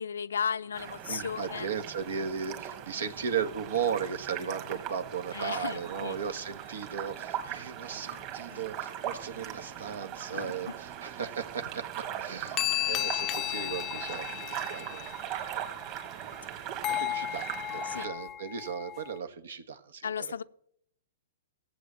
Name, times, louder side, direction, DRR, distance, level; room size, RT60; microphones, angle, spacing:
voice 1, 0.0-1.7 5.3-6.2 8.5-8.6 10.3-10.7 17.8-18.1 20.0-20.4, left 7 dB, 85° left, 14 dB, 0.6 m, -35 dB
sound 1, 0.7-18.1, right 10 dB, 35° right, 2.2 m, -40 dB
voice 2, 1.1-11.8 12.2-12.6 12.8-15.2 16.4-20.3, right 7 dB, 80° right, 9 dB, 1.5 m, -36 dB
sound 2, 12.1-12.2 12.6-16.4 16.8-19.2, left 13 dB, 25° left, 0.5 m, -34 dB
17.0 x 7.9 x 7.5 m, 0.71 s
hypercardioid pair, 140°, 0 cm